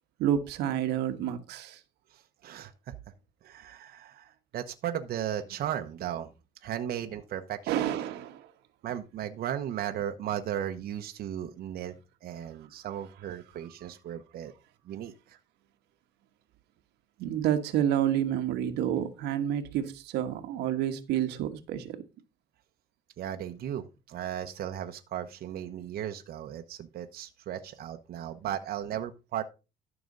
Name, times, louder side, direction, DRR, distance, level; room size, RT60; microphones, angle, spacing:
voice 1, 0.2-1.8 7.7-8.5 17.2-22.0, right 10 dB, 85° right, 1.4 m, -29 dB
voice 2, 2.1-2.9 3.4-6.3 6.6-7.9 8.8-11.9 12.2-14.5 14.9-15.4 23.2-29.4, right 10 dB, 65° right, 1.1 m, -36 dB
13.0 x 6.1 x 3.9 m
cardioid pair, 110°, 17 cm